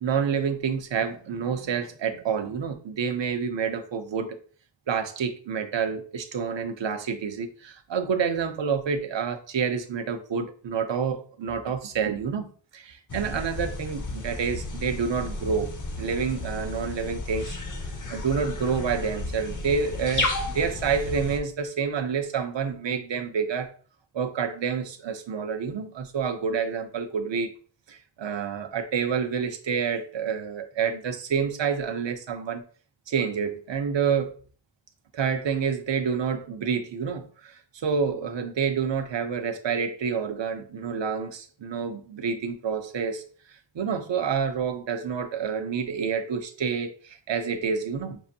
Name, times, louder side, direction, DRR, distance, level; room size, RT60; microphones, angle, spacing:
voice 1, 0.0-4.4 4.9-12.5 12.7-15.7 16.0-17.6 18.1-23.7 24.1-27.5 27.9-32.6 33.1-34.3 35.1-43.2 43.7-48.2, right 6 dB, 70° right, 8 dB, 0.7 m, -28 dB
sound 1, 13.1-21.4, left 2 dB, 45° left, 0.7 m, -33 dB
6.2 x 2.5 x 2.7 m, 0.41 s
wide cardioid pair, 105°, 46 cm